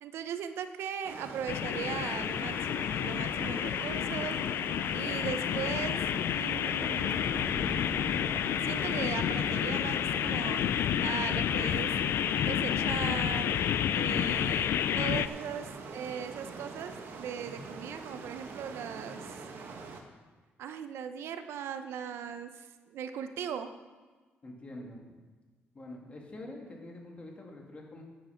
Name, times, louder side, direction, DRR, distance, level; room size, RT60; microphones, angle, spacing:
voice 1, 0.0-4.4 4.9-7.4 8.6-12.0 12.4-13.5 13.9-19.3 20.6-23.7, right 8 dB, 85° right, 9 dB, 0.8 m, -39 dB
sound 1, 1.0-20.0, right 4 dB, 65° right, 1.5 m, -44 dB
sound 2, 1.5-15.3, left 10 dB, 70° left, 0.4 m, -30 dB
sound 3, 6.6-9.5, left 1 dB, 15° left, 3.2 m, -44 dB
voice 2, 24.4-25.0 25.7-28.0, left 1 dB, 30° left, 0 dB, 2.5 m, -45 dB
10.0 x 9.5 x 5.8 m, 1.4 s
cardioid pair, 125°, 4 cm